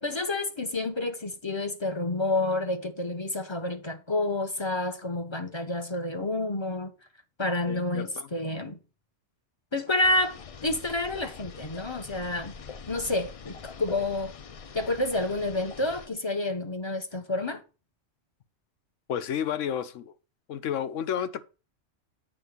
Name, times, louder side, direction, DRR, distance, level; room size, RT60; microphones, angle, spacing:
voice 1, 0.0-6.9 7.4-8.8 9.7-12.5 12.9-14.3 14.7-17.6, left 2 dB, 25° left, 0.9 m, -29 dB
voice 2, 7.7-8.3 19.1-20.1 20.5-21.4, left 9 dB, 80° left, 1.1 m, -31 dB
sound 1, 10.0-16.1, left 6 dB, 60° left, 0.3 m, -43 dB
8.6 x 3.7 x 6.6 m
omnidirectional pair, 1.3 m